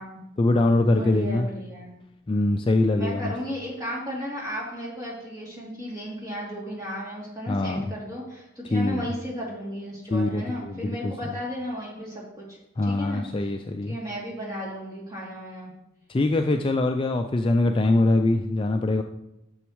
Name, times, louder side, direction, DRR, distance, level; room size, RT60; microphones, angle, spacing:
voice 1, 0.4-1.5 2.3-3.3 7.5-7.9 8.7-9.1 10.1-11.1 12.8-14.0 16.1-19.0, left 2 dB, 25° left, 5 dB, 0.3 m, -23 dB
voice 2, 0.9-1.9 2.9-13.3 13.9-15.7, equal, 15° right, -5 dB, 2.8 m, -34 dB
11.5 x 7.1 x 3.1 m, 0.87 s
head